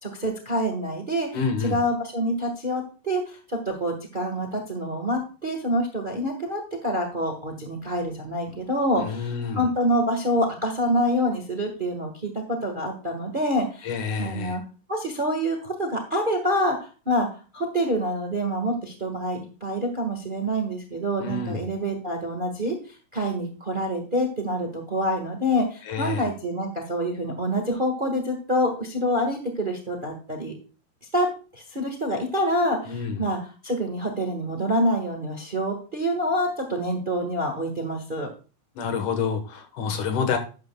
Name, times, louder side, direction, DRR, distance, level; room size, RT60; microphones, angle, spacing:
voice 1, 0.0-14.6 14.9-30.6 31.1-38.3, equal, 30° right, 2 dB, 0.9 m, -27 dB
voice 2, 1.3-1.8 9.0-9.7 13.8-14.6 21.2-21.6 25.9-26.3 32.9-33.3 38.8-40.4, left 5 dB, 85° left, 7 dB, 2.8 m, -28 dB
12.0 x 9.5 x 2.3 m, 0.36 s
omnidirectional pair, 3.4 m